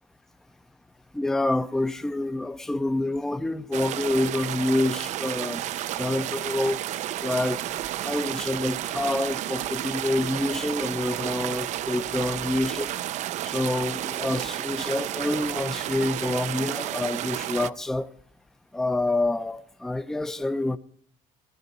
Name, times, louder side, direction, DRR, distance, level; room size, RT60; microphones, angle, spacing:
voice 1, 1.1-5.7 6.0-6.8 7.2-7.6 8.0-12.9 13.4-18.1 18.7-20.8, left 2 dB, 5° left, 0.5 m, -27 dB
sound 1, 3.7-17.7, right 13 dB, 50° right, 0.4 m, -31 dB
18.5 x 12.0 x 4.0 m
cardioid pair, 135°, 15 cm